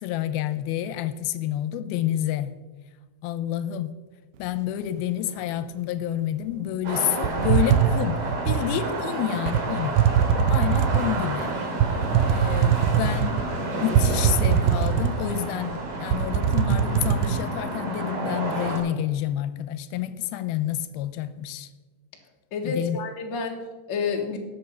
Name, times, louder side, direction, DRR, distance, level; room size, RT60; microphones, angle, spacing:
voice 1, 0.0-2.5 3.2-3.9 4.4-10.0 10.5-11.6 12.3-21.7 22.6-23.0, left 11 dB, 90° left, 13 dB, 2.6 m, -29 dB
sound 1, 6.8-18.8, right 2 dB, 65° right, 4.8 m, -30 dB
sound 2, 7.2-8.7 9.5-9.6 10.0-11.1 11.8-13.5 13.9-15.4 15.7-15.8 16.1-17.3, right 8 dB, 85° right, 2.4 m, -21 dB
voice 2, 22.5-24.4, left 5 dB, 45° left, 2 dB, 1.6 m, -29 dB
18.5 x 6.8 x 5.6 m, 1.2 s
omnidirectional pair, 4.2 m